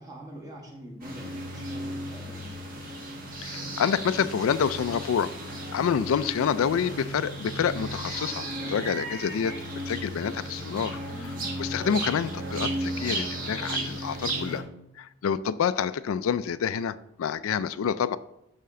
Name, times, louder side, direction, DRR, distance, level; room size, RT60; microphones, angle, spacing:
voice 1, 0.0-2.6 11.1-11.5, right 1 dB, 20° right, -1 dB, 1.6 m, -44 dB
sound 1, 1.0-14.6, right 1 dB, 45° right, 1.5 m, -34 dB
voice 2, 3.4-5.3 5.7-9.6 9.9-11.0 11.6-14.6 15.0-18.2, left 7 dB, 85° left, 15 dB, 0.3 m, -27 dB
12.5 x 4.3 x 3.7 m, 0.80 s
head